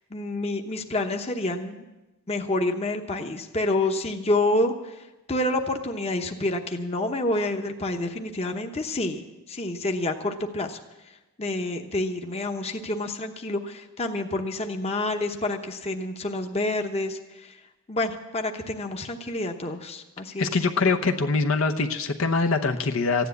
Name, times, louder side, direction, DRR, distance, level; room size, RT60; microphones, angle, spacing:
voice 1, 0.1-1.8 2.3-4.9 5.3-9.2 9.5-10.8 11.4-17.5 17.9-20.5, left 2 dB, 30° left, 4 dB, 1.0 m, -28 dB
voice 2, 20.4-23.3, left 4 dB, 65° left, 5 dB, 0.9 m, -23 dB
15.0 x 10.0 x 8.3 m, 1.1 s
head